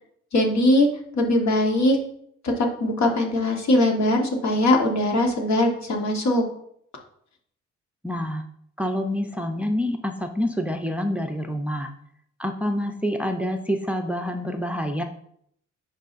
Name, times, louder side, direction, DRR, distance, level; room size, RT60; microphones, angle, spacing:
voice 1, 0.3-2.0 2.4-6.4, left 1 dB, 65° left, 2 dB, 1.5 m, -21 dB
voice 2, 8.0-8.4 8.8-11.9 12.4-15.0, equal, 5° right, 5 dB, 0.5 m, -27 dB
10.5 x 4.7 x 2.5 m, 0.68 s
cardioid pair, 90°, 30 cm